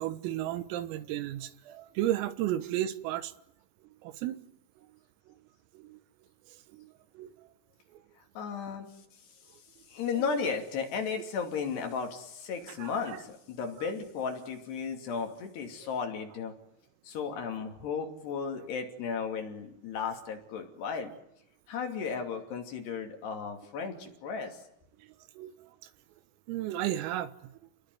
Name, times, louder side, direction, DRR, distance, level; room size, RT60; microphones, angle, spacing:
voice 1, 0.0-3.3 4.0-4.4 5.3-5.4 5.7-6.0 6.7-7.3 7.9-8.0 12.7-13.2 13.8-13.9 25.4-25.5 26.5-27.5, right 13 dB, 80° right, 3.9 m, -34 dB
voice 2, 8.4-8.9 9.9-16.5 17.1-21.1 21.7-24.6, left 5 dB, 55° left, 4.6 m, -35 dB
30.0 x 20.5 x 9.4 m
omnidirectional pair, 5.9 m